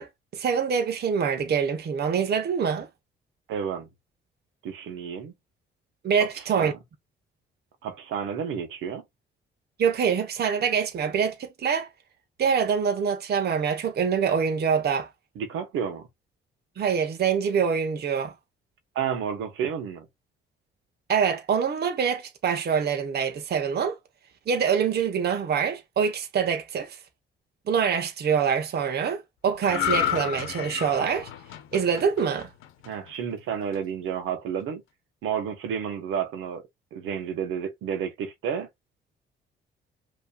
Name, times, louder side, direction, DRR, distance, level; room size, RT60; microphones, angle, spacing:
voice 1, 0.0-2.9 6.0-6.7 9.8-11.9 12.4-15.1 16.8-18.3 21.1-24.0 24.5-27.0 27.7-31.3 31.7-32.5, right 7 dB, 55° right, 1.1 m, -25 dB
voice 2, 3.5-3.9 4.6-5.3 6.6-6.8 7.8-9.0 15.3-16.1 18.9-20.1 32.8-34.8 35.2-36.6 36.9-38.7, right 8 dB, 85° right, 1.3 m, -31 dB
sound 1, 29.6-33.1 33.5-33.8, left 10 dB, 90° left, 0.8 m, -31 dB
5.6 x 3.1 x 2.4 m
cardioid pair, 90°, 20 cm